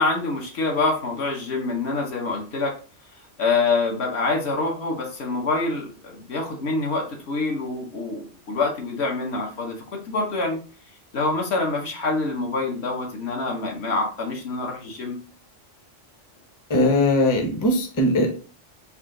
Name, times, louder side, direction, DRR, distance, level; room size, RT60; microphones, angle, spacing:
voice 1, 0.0-2.8 3.4-10.6 11.1-15.2, left 3 dB, 60° left, 1 dB, 1.2 m, -26 dB
voice 2, 16.7-18.3, left 1 dB, 20° left, 1 dB, 0.6 m, -20 dB
4.2 x 2.4 x 3.7 m, 0.37 s
omnidirectional pair, 1.3 m